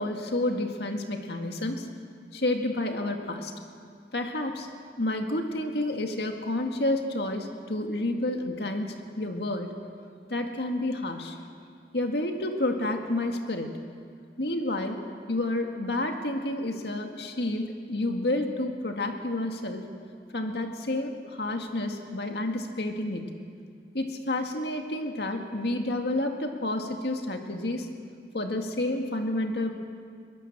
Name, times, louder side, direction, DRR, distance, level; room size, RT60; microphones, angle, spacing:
voice 1, 0.0-1.9 2.3-3.5 4.1-4.7 5.0-9.7 10.3-11.4 11.9-13.7 14.4-15.0 15.3-19.9 20.3-23.3 23.9-27.9 28.3-29.7, left 1 dB, 70° left, 4 dB, 2.0 m, -30 dB
22.5 x 20.0 x 7.4 m, 2.2 s
head